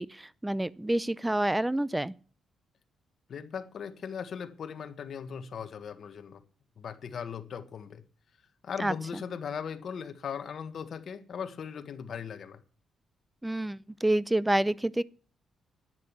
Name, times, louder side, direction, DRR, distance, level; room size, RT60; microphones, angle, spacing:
voice 1, 0.0-2.2 8.8-9.2 13.4-15.0, right 1 dB, 10° right, 0.6 m, -28 dB
voice 2, 3.3-6.4 6.8-8.0 8.6-12.6, left 7 dB, 60° left, 1.5 m, -38 dB
10.5 x 9.9 x 7.2 m
cardioid pair, 95°, 0 cm